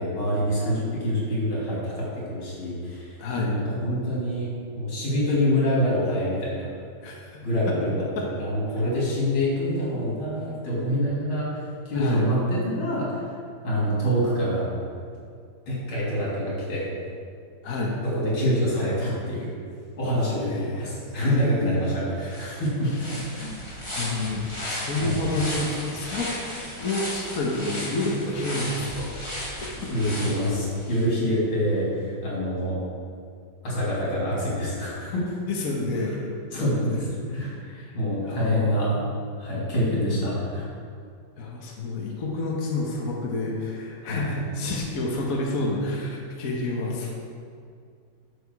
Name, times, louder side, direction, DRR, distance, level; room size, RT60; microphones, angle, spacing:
voice 1, 0.0-6.7 7.4-13.3 13.6-14.7 15.7-16.9 18.0-19.5 20.0-22.9 23.2-23.5 25.0-25.2 29.7-32.8 33.6-35.3 36.0-36.1 36.5-37.6 37.9-38.9 39.4-40.7 44.0-44.3, equal, 75° left, -6 dB, 3.9 m, -26 dB
voice 2, 3.2-3.5 7.0-7.8 8.1-8.3 11.9-12.3 17.6-17.9 20.5-21.2 22.2-22.6 23.9-26.3 26.8-29.1 29.6-29.7 35.4-36.2 37.0-37.1 37.7-37.9 38.2-38.9 41.4-47.1, left 2 dB, 45° left, -2 dB, 1.5 m, -29 dB
sound 1, 21.9-22.0 22.3-31.0, left 1 dB, 15° left, 1.7 m, -35 dB
12.0 x 6.8 x 4.7 m, 2.3 s
omnidirectional pair, 2.3 m